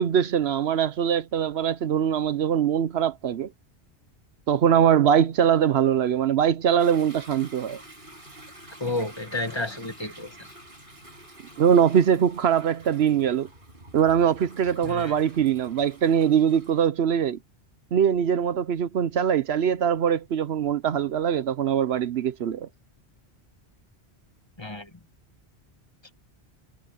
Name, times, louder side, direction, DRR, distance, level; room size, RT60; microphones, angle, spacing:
voice 1, 0.0-3.5 4.5-7.8 11.6-13.5 13.9-17.4 17.9-22.7, right 8 dB, 70° right, 0.9 m, -22 dB
Toilet flush / Drip / Trickle dribble, 6.8-16.9, right 1 dB, 50° right, 5.6 m, -48 dB
voice 2, 8.8-10.4 14.8-15.1 24.6-24.9, left 2 dB, 25° left, 1.6 m, -31 dB
omnidirectional pair, 1.1 m